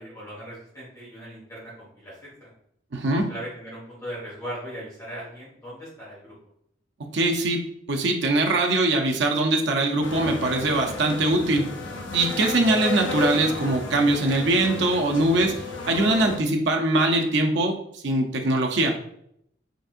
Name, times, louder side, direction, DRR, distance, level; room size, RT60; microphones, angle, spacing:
voice 1, 0.0-2.5 3.0-6.4, equal, 15° left, -8 dB, 1.5 m, -39 dB
voice 2, 2.9-3.3 7.1-7.6 7.9-11.7 12.1-17.8 18.0-19.0, right 2 dB, 60° right, 2 dB, 0.6 m, -22 dB
sound 1, 10.0-16.4, left 4 dB, 70° left, 0.6 m, -33 dB
4.0 x 3.5 x 2.4 m, 0.73 s
head